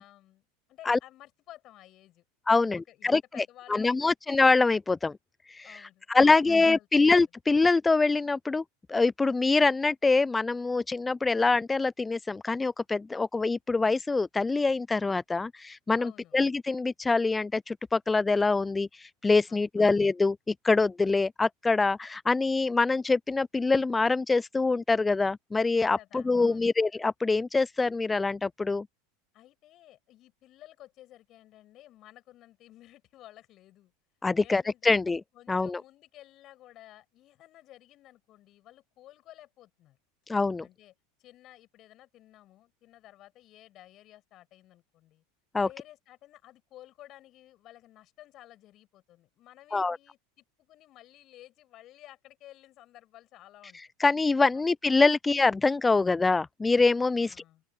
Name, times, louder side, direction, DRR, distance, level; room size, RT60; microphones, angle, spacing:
voice 1, 0.0-2.2 2.5-4.1 5.6-7.0 16.0-16.3 19.5-19.9 26.0-26.7 29.3-33.9 34.3-34.9 35.3-40.0 40.6-40.9 41.2-45.2 45.6-53.8 54.5-55.0 57.1-57.6, left 14 dB, 40° left, 7.7 m, -54 dB
voice 2, 2.5-5.1 5.5-8.6 8.9-28.9 34.2-35.2 35.5-35.8 40.3-40.7 45.5-45.7 49.7-50.0 53.7-57.4, left 3 dB, 15° left, 0.4 m, -25 dB
open air
figure-of-eight pair, 80°, 0 cm